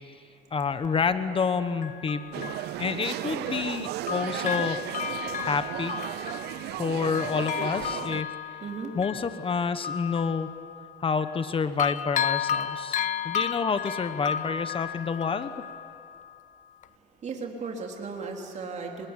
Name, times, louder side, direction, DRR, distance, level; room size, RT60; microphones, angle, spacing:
voice 1, 0.5-2.5 2.8-4.8 5.4-5.9 6.8-8.3 8.9-10.5 11.0-13.0 13.2-15.5, left 5 dB, 30° left, 11 dB, 1.2 m, -28 dB
Bell, 0.8-0.9 1.8-3.8 4.1-11.5 11.8-16.4 16.8-16.9, left 8 dB, 50° left, 0.8 m, -33 dB
sound 1, 2.3-8.2, right 16 dB, 75° right, 0.6 m, -35 dB
voice 2, 8.6-9.0 16.9-19.1, right 4 dB, 45° right, 1 dB, 3.4 m, -36 dB
25.0 x 22.0 x 9.9 m, 2.6 s
cardioid pair, 110°, 17 cm